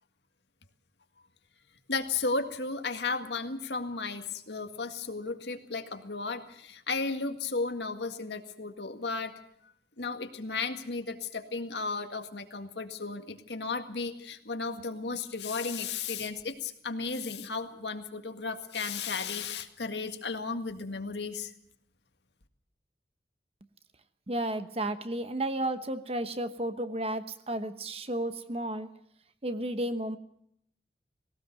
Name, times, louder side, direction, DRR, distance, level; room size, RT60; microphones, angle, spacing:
voice 1, 1.9-9.3 10.0-21.5, left 4 dB, 70° left, 7 dB, 1.8 m, -34 dB
voice 2, 24.3-28.9 29.4-30.2, right 1 dB, 35° right, 10 dB, 1.1 m, -32 dB
19.0 x 18.0 x 7.7 m, 0.72 s
head